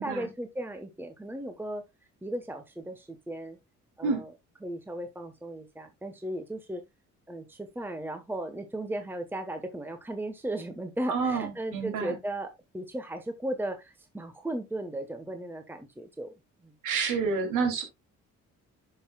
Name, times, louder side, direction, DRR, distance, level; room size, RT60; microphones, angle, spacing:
voice 1, 0.0-1.8 2.2-3.6 4.0-4.3 4.6-6.8 7.3-16.3 16.6-16.7, right 1 dB, 5° right, 1.1 m, -36 dB
voice 2, 11.1-12.2 16.8-17.8, right 5 dB, 90° right, 2.6 m, -29 dB
11.0 x 5.6 x 2.3 m
cardioid pair, 90°, 30 cm